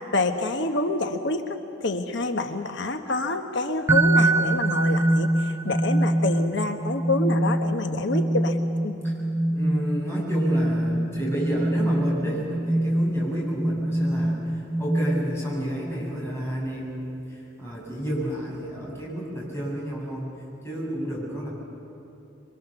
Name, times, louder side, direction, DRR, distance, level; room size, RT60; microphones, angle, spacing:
voice 1, 0.1-8.6 8.8-9.0, left 2 dB, 65° left, 6 dB, 1.2 m, -27 dB
sound 1, 3.9-15.6, right 1 dB, 15° right, 0.9 m, -24 dB
voice 2, 9.5-20.3 20.6-21.5, equal, 15° left, -5 dB, 7.8 m, -31 dB
27.0 x 24.0 x 6.9 m, 2.8 s
head